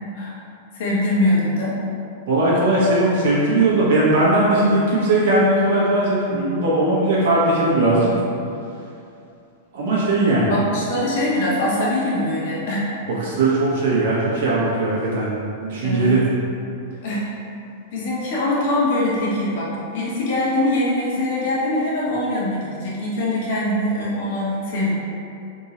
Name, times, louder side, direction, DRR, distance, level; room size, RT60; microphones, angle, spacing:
voice 1, 0.7-1.8 10.5-12.9 15.8-16.2 17.0-17.3 17.9-24.9, left 1 dB, 55° left, -7 dB, 1.2 m, -22 dB
voice 2, 2.3-8.1 9.7-10.6 13.0-15.3 15.6-16.2, right 2 dB, 65° right, -7 dB, 1.2 m, -19 dB
3.7 x 2.6 x 4.2 m, 2.6 s
supercardioid pair, 160°, 0 cm